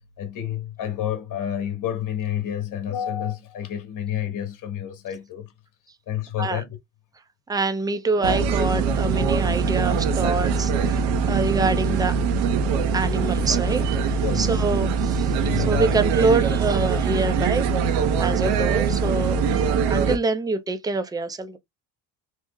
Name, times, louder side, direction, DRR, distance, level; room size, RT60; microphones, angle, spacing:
voice 1, 0.0-5.5 6.1-6.8 7.9-8.0 11.1-11.2 14.2-14.6 15.3-16.0, left 10 dB, 50° left, 1.0 m, -30 dB
voice 2, 7.5-12.2 12.9-19.5 19.9-21.6, right 3 dB, 10° right, 0.4 m, -26 dB
sound 1, 8.2-20.2, right 5 dB, 85° right, 0.7 m, -22 dB
3.2 x 2.0 x 3.5 m
cardioid pair, 105°, 41 cm